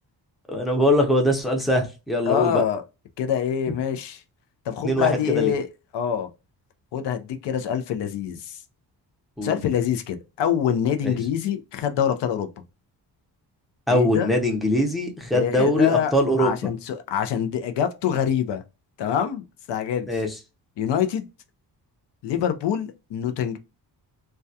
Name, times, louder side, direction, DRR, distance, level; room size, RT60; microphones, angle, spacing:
voice 1, 0.5-2.6 4.8-5.5 9.4-9.6 11.0-11.2 13.9-16.5 20.1-20.4, left 1 dB, ahead, 0.5 m, -22 dB
voice 2, 2.2-2.8 3.2-4.2 4.7-5.7 5.9-6.3 6.9-8.6 9.4-12.5 13.9-14.3 15.3-18.6 19.0-20.1 20.8-21.3 22.2-23.6, left 9 dB, 80° left, 0.5 m, -25 dB
2.3 x 2.2 x 2.6 m
cardioid pair, 115°, 41 cm